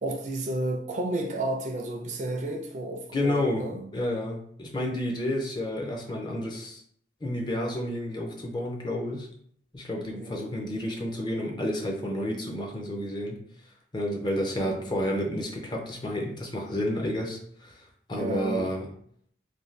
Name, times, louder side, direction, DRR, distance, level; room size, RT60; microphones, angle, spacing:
voice 1, 0.0-3.9 10.2-10.6 14.3-14.9 18.1-18.7, right 1 dB, 40° right, 0.4 m, -32 dB
voice 2, 3.1-3.6 3.9-6.8 7.2-9.3 9.7-13.4 13.9-18.9, left 1 dB, 25° left, 0.4 m, -30 dB
2.6 x 2.2 x 3.2 m
head